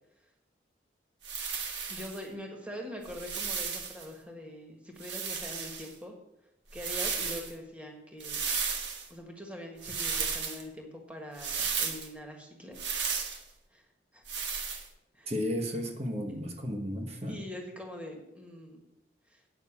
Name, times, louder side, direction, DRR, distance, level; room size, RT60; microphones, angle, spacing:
sound 1, 1.2-2.2 3.0-4.0 5.0-5.9 6.7-7.5 8.2-9.1 9.8-10.6 11.4-12.1 12.7-13.4 14.3-14.9, right 6 dB, 80° right, 1.3 m, -34 dB
voice 1, 1.9-6.1 6.7-8.4 8.7-8.8 9.1-12.8 13.7-13.8 14.1-14.2 15.1-15.5 17.3-18.8 19.3-19.4, equal, 5° right, 1 dB, 1.5 m, -43 dB
voice 2, 15.2-17.4, equal, 35° right, 4 dB, 1.2 m, -33 dB
9.0 x 6.0 x 7.2 m, 0.88 s
head